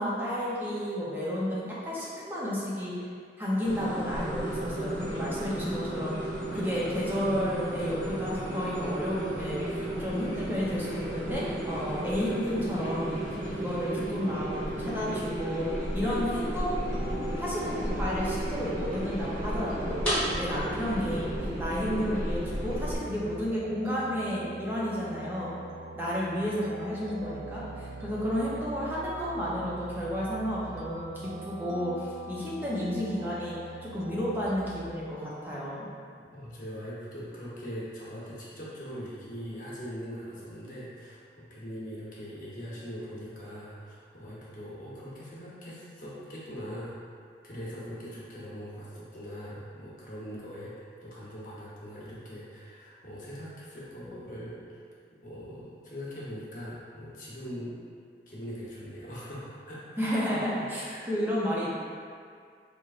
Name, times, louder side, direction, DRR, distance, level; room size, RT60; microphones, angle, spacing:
voice 1, 0.0-3.1 3.4-6.1 6.5-13.1 13.5-16.9 17.4-20.0 20.4-25.6 25.9-33.6 33.8-35.9 60.0-61.7, equal, 10° right, -8 dB, 0.6 m, -32 dB
sound 1, 3.6-23.0, right 1 dB, 5° left, 1.2 m, -33 dB
sound 2, 16.7-34.8, right 2 dB, 70° right, 0.4 m, -44 dB
voice 2, 36.3-46.9 47.4-54.8 55.2-57.7 58.3-60.4 60.8-61.1, equal, 45° left, -7 dB, 0.9 m, -41 dB
4.2 x 3.0 x 2.4 m, 2.2 s
head